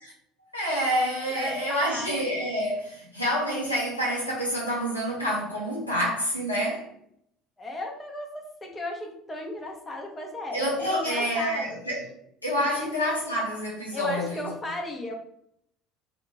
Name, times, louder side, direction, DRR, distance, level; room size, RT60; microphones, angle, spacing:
voice 1, 0.5-6.9 10.5-12.1 12.4-14.5, equal, 85° left, 0.8 m, -28 dB
voice 2, 1.3-2.1 7.6-11.7 12.7-13.0 13.9-15.1, left 2 dB, 20° left, 0.8 m, -35 dB
2.4 x 2.4 x 3.1 m
figure-of-eight pair, 60°, 0 cm